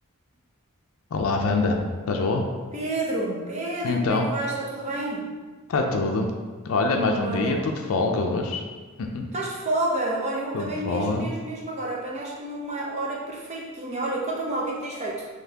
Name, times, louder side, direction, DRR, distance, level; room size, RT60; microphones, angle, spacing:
voice 1, 1.1-1.8 2.1-2.5 3.8-4.3 5.7-6.3 6.6-8.6 9.0-9.2 10.5-11.3, left 3 dB, 75° left, 2 dB, 0.4 m, -24 dB
voice 2, 2.7-5.3 7.2-7.7 9.3-15.3, right 2 dB, 30° right, -3 dB, 0.6 m, -30 dB
4.0 x 3.0 x 2.8 m, 1.4 s
head